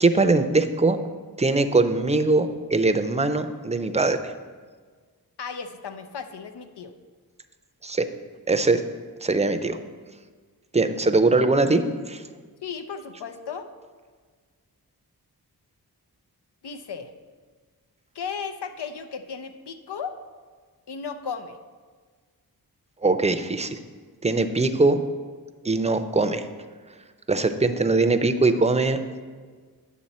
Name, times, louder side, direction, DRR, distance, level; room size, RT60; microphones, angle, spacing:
voice 1, 0.0-1.0 1.4-4.3 7.8-8.1 8.5-8.8 9.2-9.8 10.7-12.2 23.0-23.8 24.2-25.0 25.6-26.5 27.3-29.0, right 3 dB, 15° right, 9 dB, 0.6 m, -21 dB
voice 2, 5.4-6.9 12.6-13.7 16.6-17.1 18.1-20.2 20.9-21.6, left 6 dB, 85° left, 8 dB, 0.7 m, -35 dB
9.3 x 6.9 x 4.2 m, 1.5 s
wide cardioid pair, 65°, 39 cm